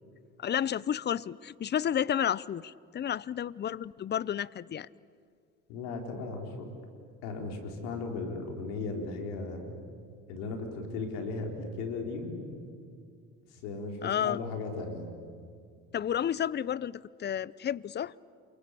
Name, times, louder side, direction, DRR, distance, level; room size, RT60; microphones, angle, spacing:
voice 1, 0.4-4.9 14.0-14.4 15.9-18.1, left 9 dB, 30° left, 0.6 m, -31 dB
voice 2, 5.7-6.7 7.2-9.8 10.3-12.5 13.6-15.1, left 3 dB, 80° left, 4.6 m, -36 dB
28.0 x 23.5 x 8.5 m
hypercardioid pair, 75°, 36 cm